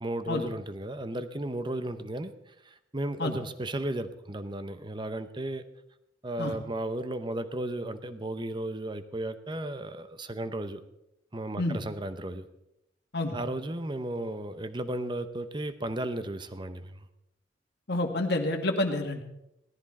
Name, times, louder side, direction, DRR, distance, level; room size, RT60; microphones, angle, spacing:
voice 1, 0.0-2.3 2.7-5.6 6.2-10.8 11.3-12.5 13.3-16.9, right 1 dB, 25° right, 11 dB, 0.8 m, -34 dB
voice 2, 17.9-19.2, left 2 dB, 60° left, 4 dB, 1.8 m, -28 dB
17.5 x 13.0 x 4.3 m, 0.85 s
head